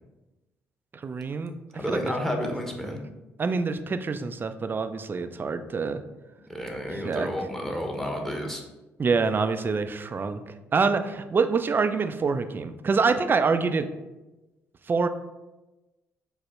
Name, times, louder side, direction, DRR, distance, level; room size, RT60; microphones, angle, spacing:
voice 1, 0.9-2.1 2.8-3.0 3.4-6.0 6.9-7.3 9.0-13.9 14.9-15.1, right 4 dB, 35° right, 9 dB, 0.4 m, -26 dB
voice 2, 1.7-3.0 6.5-8.6, equal, 5° left, 2 dB, 1.0 m, -31 dB
5.0 x 2.1 x 4.7 m, 1.1 s
supercardioid pair, 60°, 6 cm